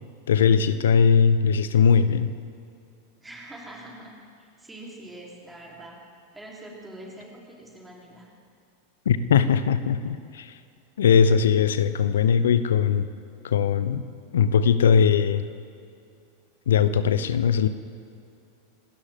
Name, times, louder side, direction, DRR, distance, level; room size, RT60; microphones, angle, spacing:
voice 1, 0.3-2.3 9.1-10.5 11.0-13.1 13.4-14.0 14.3-15.4 16.7-17.7, left 7 dB, 65° left, 13 dB, 0.8 m, -20 dB
voice 2, 3.2-6.0 6.3-8.3, right 1 dB, 10° right, -3 dB, 3.9 m, -44 dB
27.5 x 12.5 x 3.8 m, 2.5 s
figure-of-eight pair, 90°, 0 cm